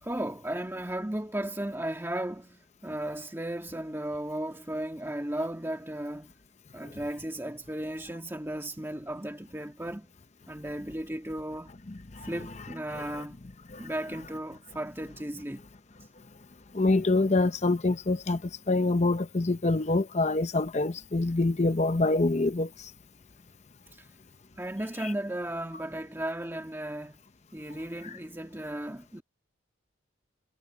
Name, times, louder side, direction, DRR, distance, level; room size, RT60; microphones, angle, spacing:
voice 1, 0.0-6.3 6.7-10.1 10.5-11.7 12.2-13.4 13.8-15.6 23.9-24.1 24.6-27.2 27.5-29.2, right 1 dB, 10° right, 1.7 m, -35 dB
voice 2, 12.9-13.2 13.7-13.9 16.7-22.9 25.0-25.1, left 2 dB, 35° left, 0.7 m, -26 dB
head